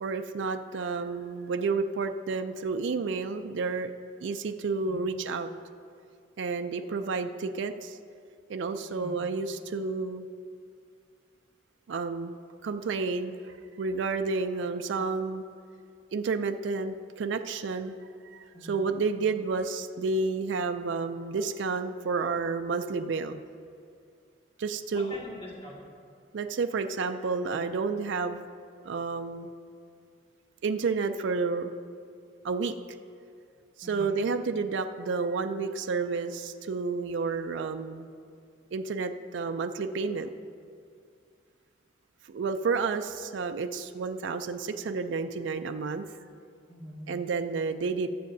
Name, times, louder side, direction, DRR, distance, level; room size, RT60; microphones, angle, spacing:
voice 1, 0.0-3.9 4.2-5.5 6.4-8.0 8.5-10.3 11.9-15.5 16.1-18.0 18.2-23.4 24.6-25.1 26.3-28.4 28.8-29.5 30.6-31.7 32.4-32.7 33.8-38.1 38.7-40.3 42.3-46.1 47.1-48.1, right 4 dB, 70° right, 8 dB, 0.4 m, -30 dB
voice 2, 8.9-9.2 18.5-18.8 24.9-25.8 33.8-34.1 46.7-47.0, equal, 30° left, -5 dB, 1.9 m, -43 dB
19.5 x 7.5 x 2.6 m, 2.3 s
head